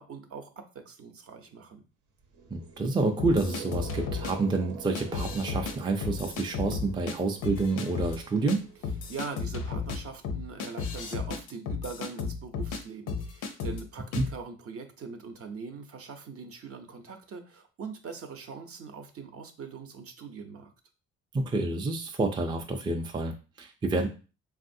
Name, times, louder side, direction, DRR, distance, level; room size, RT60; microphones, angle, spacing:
voice 1, 0.0-1.8 9.1-20.7, right 5 dB, 50° right, 6 dB, 0.6 m, -42 dB
sound 1, 2.2-10.3, right 5 dB, 80° right, 0.8 m, -46 dB
voice 2, 2.5-8.7 14.2-14.3 21.3-24.1, right 3 dB, 15° right, 3 dB, 0.4 m, -28 dB
sound 2, 3.2-4.3 4.9-5.7 6.0-7.1 7.4-8.2 8.5-8.6 8.8-12.8 13.1-13.8 14.1-14.3, left 5 dB, 85° left, 0.6 m, -33 dB
3.3 x 2.4 x 2.6 m, 0.33 s
cardioid pair, 90°, 30 cm